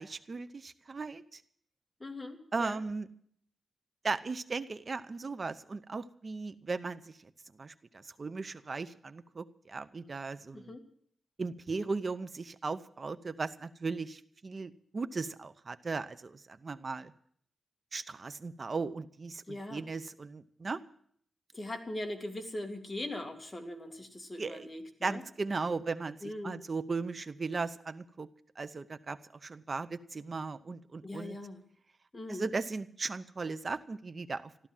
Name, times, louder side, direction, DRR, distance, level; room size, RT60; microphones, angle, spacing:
voice 1, 0.0-1.4 2.5-3.1 4.0-7.2 7.6-10.7 11.4-17.1 17.9-20.8 24.4-24.7 25.0-28.3 28.6-31.4 32.3-34.5, right 4 dB, 40° right, 14 dB, 0.7 m, -37 dB
voice 2, 2.0-2.8 10.5-10.8 19.5-19.8 21.5-25.2 26.2-26.6 31.0-31.6 32.1-32.5, left 1 dB, 20° left, 4 dB, 2.2 m, -40 dB
14.5 x 12.5 x 7.3 m, 0.63 s
wide cardioid pair, 105°, 0 cm